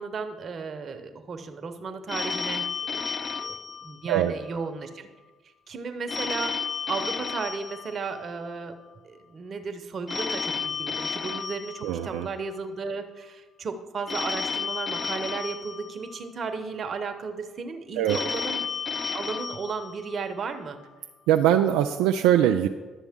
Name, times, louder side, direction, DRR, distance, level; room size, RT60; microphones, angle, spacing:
voice 1, 0.0-3.0 3.4-5.1 5.7-6.5 6.9-8.8 9.0-18.7 19.1-20.8, right 4 dB, 45° right, 7 dB, 1.0 m, -34 dB
Telephone, 2.1-4.6 6.1-8.6 10.1-12.6 14.1-16.6 18.1-20.6, left 5 dB, 40° left, 0.3 m, -33 dB
voice 2, 11.8-12.3 18.0-18.2 21.3-22.7, right 11 dB, 80° right, 5 dB, 0.3 m, -22 dB
12.0 x 7.0 x 3.6 m, 1.3 s
hypercardioid pair, 60°, 0 cm